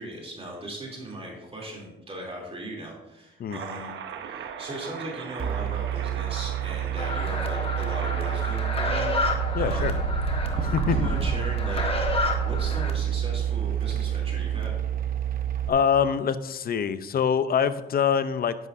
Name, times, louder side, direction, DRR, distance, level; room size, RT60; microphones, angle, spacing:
voice 1, 0.0-3.9 4.2-10.0 10.5-11.8 12.4-14.7, right 1 dB, 30° right, -2 dB, 3.2 m, -38 dB
sound 1, 3.5-11.3, right 5 dB, 70° right, 1.1 m, -36 dB
sound 2, 5.4-15.7, right 9 dB, 45° right, 0.9 m, -28 dB
sound 3, 7.0-12.9, left 3 dB, 30° left, 1.5 m, -31 dB
voice 2, 9.5-9.9 10.6-11.0 15.7-18.5, left 7 dB, 50° left, 13 dB, 0.7 m, -24 dB
10.5 x 10.5 x 2.7 m, 0.98 s
cardioid pair, 90°, 20 cm